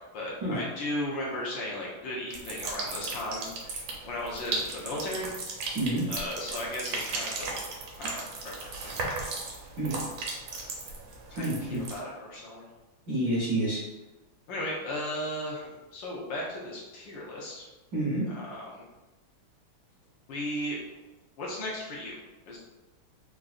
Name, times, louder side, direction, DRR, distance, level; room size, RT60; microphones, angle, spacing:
voice 1, 0.0-3.5 4.0-5.3 6.1-7.6 8.0-9.0 11.3-12.6 14.5-17.6 18.3-18.8 20.3-20.8 21.4-22.2 22.5-22.6, left 1 dB, 70° left, -4 dB, 1.3 m, -36 dB
sound 1, 2.3-12.0, right 3 dB, 80° right, 1.5 m, -36 dB
voice 2, 5.7-6.1 9.8-10.0 11.4-11.8 13.1-13.8 17.9-18.3, right 1 dB, 60° right, -9 dB, 0.9 m, -28 dB
3.8 x 2.4 x 2.4 m, 1.1 s
omnidirectional pair, 2.3 m